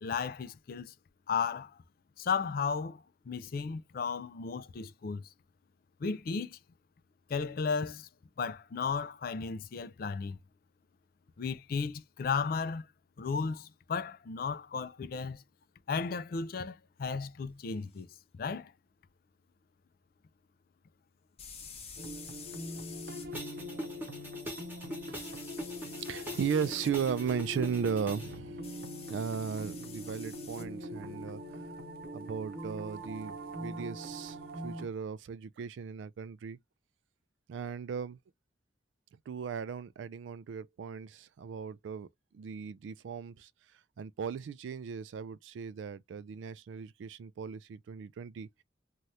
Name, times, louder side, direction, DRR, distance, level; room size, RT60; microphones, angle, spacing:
voice 1, 0.0-0.9 1.3-1.8 2.2-5.2 6.0-6.6 7.3-8.1 8.4-10.4 11.4-12.9 13.2-15.4 15.9-18.1 18.3-18.7, left 5 dB, 50° left, 0.4 m, -34 dB
sound 1, 17.9-18.0 21.4-23.3 25.1-26.9 28.6-30.7, left 6 dB, 35° left, 0.9 m, -49 dB
sound 2, 22.0-34.9, equal, 55° right, 0.7 m, -42 dB
sound 3, 23.3-28.3, equal, 10° right, 1.1 m, -43 dB
voice 2, 25.9-28.7 29.1-31.4 32.1-34.4 34.6-36.6 37.5-38.2 39.3-42.1 42.3-43.5 44.0-48.5, right 6 dB, 90° right, 0.3 m, -36 dB
2.8 x 2.3 x 3.1 m
head